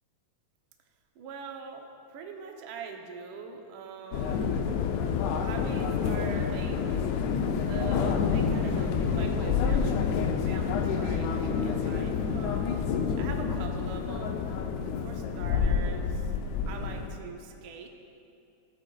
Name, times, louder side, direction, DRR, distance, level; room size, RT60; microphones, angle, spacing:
voice 1, 1.1-4.6 5.4-7.2 7.7-10.1 10.3-14.4 15.0-16.3 16.7-17.9, right 5 dB, 90° right, 3 dB, 1.1 m, -43 dB
sound 1, 4.1-17.1, left 6 dB, 80° left, 1.9 m, -28 dB
15.0 x 9.5 x 2.3 m, 2.6 s
omnidirectional pair, 3.4 m